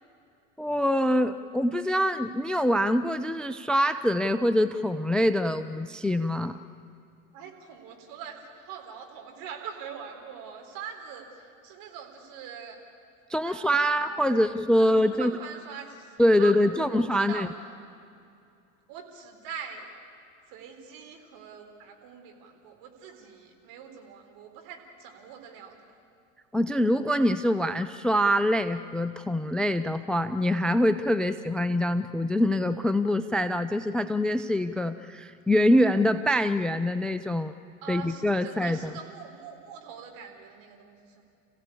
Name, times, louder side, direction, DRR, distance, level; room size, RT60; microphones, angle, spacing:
voice 1, 0.6-6.6 13.3-15.3 16.2-17.5 26.5-37.5 37.9-38.9, equal, ahead, 10 dB, 0.5 m, -24 dB
voice 2, 7.3-12.8 13.4-17.5 18.9-19.9 20.5-26.0 31.2-31.4 37.8-41.2, right 7 dB, 55° right, 3 dB, 4.1 m, -43 dB
27.5 x 16.0 x 8.6 m, 2.6 s
hypercardioid pair, 75°, 41 cm